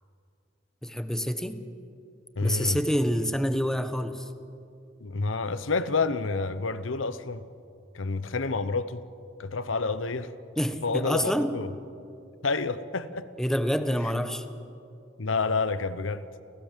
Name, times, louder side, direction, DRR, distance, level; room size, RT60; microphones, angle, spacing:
voice 1, 0.8-1.6 2.4-4.3 10.6-11.6 13.4-14.5, equal, 5° left, 1.1 m, -27 dB
voice 2, 2.4-2.8 5.0-7.4 7.9-9.0 9.4-10.3 10.8-11.7 12.4-13.3 15.2-16.4, left 4 dB, 90° left, 1.0 m, -29 dB
29.0 x 16.0 x 7.5 m
head